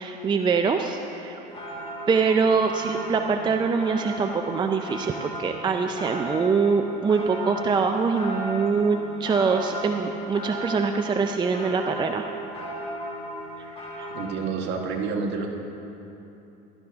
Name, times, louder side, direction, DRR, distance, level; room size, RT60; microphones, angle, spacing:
voice 1, 0.0-1.4 2.1-12.3 13.6-14.1, right 5 dB, 20° right, 5 dB, 0.5 m, -24 dB
sound 1, 1.5-14.4, right 1 dB, 30° left, 2.3 m, -36 dB
voice 2, 14.1-15.5, right 5 dB, 55° right, 1 dB, 1.7 m, -28 dB
16.0 x 12.0 x 3.5 m, 3.0 s
supercardioid pair, 115°, 21 cm